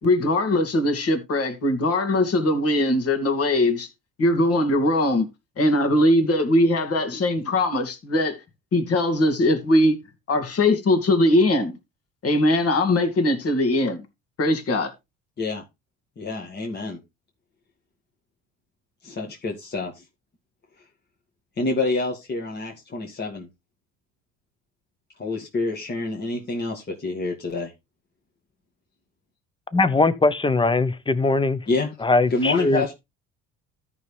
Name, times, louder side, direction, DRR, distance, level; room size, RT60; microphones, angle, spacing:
voice 1, 0.0-3.9 4.2-5.3 5.6-8.4 8.7-10.0 10.3-11.8 12.2-14.0 14.4-14.9, left 1 dB, 50° left, 2.6 m, -21 dB
voice 2, 16.2-17.0 19.0-20.0 21.6-23.5 25.2-27.7 31.7-31.9 32.3-32.9, left 3 dB, 35° left, 2.0 m, -27 dB
voice 3, 29.7-31.6 32.0-32.9, left 3 dB, 15° left, 1.0 m, -21 dB
13.5 x 5.6 x 3.3 m
supercardioid pair, 75°, 31 cm